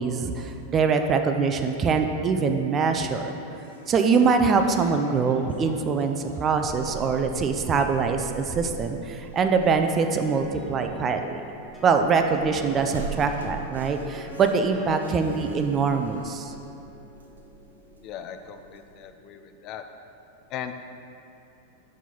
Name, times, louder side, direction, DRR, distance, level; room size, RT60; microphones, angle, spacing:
voice 1, 0.0-3.3 3.9-11.4 11.8-16.5, right 5 dB, 25° right, 6 dB, 0.4 m, -23 dB
sound 1, 3.5-7.6, left 1 dB, 75° left, 0.9 m, -45 dB
sound 2, 6.6-19.1, right 3 dB, 70° right, 0.6 m, -41 dB
sound 3, 9.9-19.5, equal, ahead, 1.2 m, -44 dB
voice 2, 18.0-19.8 20.5-20.7, left 9 dB, 35° left, 8 dB, 0.3 m, -38 dB
6.0 x 5.3 x 4.4 m, 2.6 s
figure-of-eight pair, 90°, 0 cm